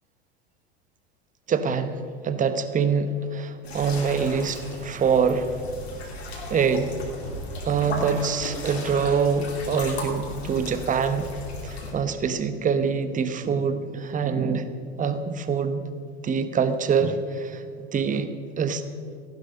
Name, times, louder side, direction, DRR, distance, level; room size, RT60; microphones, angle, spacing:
voice 1, 1.5-5.6 6.5-6.9 7.6-11.3 11.6-14.7 15.0-15.8 16.2-17.6 17.9-18.3 18.6-18.8, right 6 dB, 25° right, 11 dB, 1.1 m, -25 dB
sound 1, 3.6-11.9, left 2 dB, 80° left, 3.1 m, -36 dB
15.0 x 11.5 x 5.5 m, 2.1 s
hypercardioid pair, 80°, 31 cm